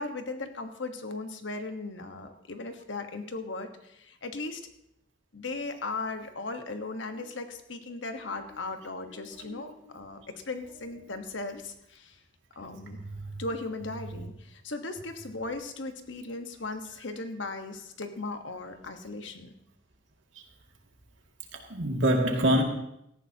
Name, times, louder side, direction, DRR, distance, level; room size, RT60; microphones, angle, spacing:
voice 1, 0.0-4.7 5.3-12.2 12.5-13.0 13.4-19.5, left 3 dB, 75° left, 1.4 m, -37 dB
voice 2, 9.2-9.6 10.2-10.3 13.0-13.4 20.4-20.5 21.5-22.6, right 1 dB, 85° right, 2.3 m, -27 dB
18.0 x 14.0 x 2.9 m
head